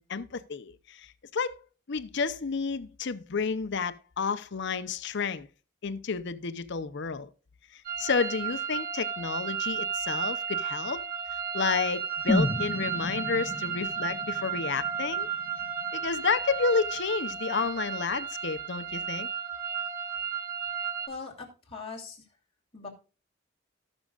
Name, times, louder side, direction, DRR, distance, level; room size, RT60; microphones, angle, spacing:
voice 1, 0.0-1.6 1.9-5.5 5.8-7.3 7.7-11.0 11.5-15.3 15.9-19.3, left 5 dB, 60° left, 0.7 m, -31 dB
sound 1, 7.8-21.1, right 7 dB, 45° right, 1.4 m, -33 dB
sound 2, 12.3-16.3 16.6-16.7, left 1 dB, 15° left, 0.9 m, -32 dB
voice 2, 21.1-21.5 21.7-22.2 22.7-22.9, left 4 dB, 30° left, 2.8 m, -39 dB
19.0 x 6.3 x 2.4 m
head